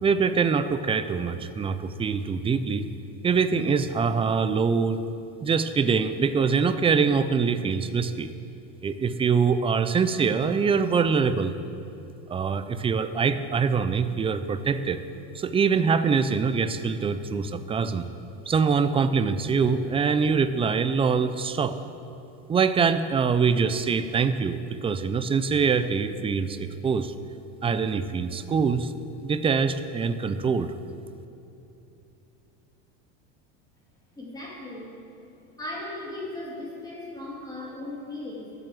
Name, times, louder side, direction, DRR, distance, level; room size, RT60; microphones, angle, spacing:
voice 1, 0.0-2.9 3.2-5.0 5.4-8.3 8.8-11.6 12.3-15.0 15.3-18.1 18.5-21.8 22.5-27.1 27.6-28.9 29.2-30.7, right 5 dB, 15° right, 11 dB, 0.4 m, -24 dB
voice 2, 34.2-35.0 35.6-38.5, left 2 dB, 10° left, -5 dB, 2.4 m, -37 dB
12.0 x 7.8 x 7.6 m, 2.8 s
supercardioid pair, 125°, 36 cm